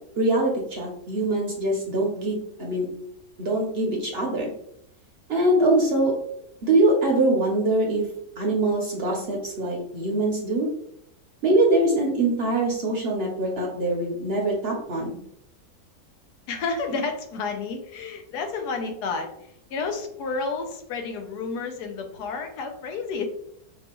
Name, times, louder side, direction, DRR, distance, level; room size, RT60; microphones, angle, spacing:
voice 1, 0.2-2.9 3.4-4.5 5.3-6.2 6.6-8.1 8.4-10.7 11.4-15.2, right 2 dB, 55° right, -1 dB, 0.7 m, -23 dB
voice 2, 16.5-23.3, left 4 dB, 90° left, 5 dB, 1.3 m, -31 dB
5.1 x 2.4 x 2.9 m, 0.73 s
omnidirectional pair, 1.6 m